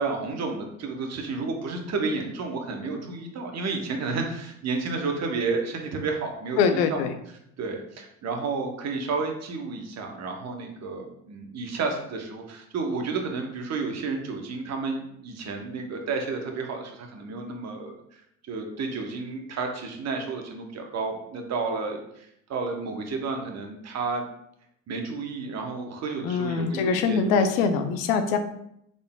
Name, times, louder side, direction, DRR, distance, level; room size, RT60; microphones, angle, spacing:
voice 1, 0.0-7.0 7.6-24.3 24.9-27.4, right 4 dB, 45° right, 3 dB, 0.8 m, -31 dB
voice 2, 6.6-7.1 26.2-28.4, left 5 dB, 80° left, 7 dB, 0.6 m, -23 dB
3.8 x 3.5 x 2.2 m, 0.74 s
supercardioid pair, 85°, 39 cm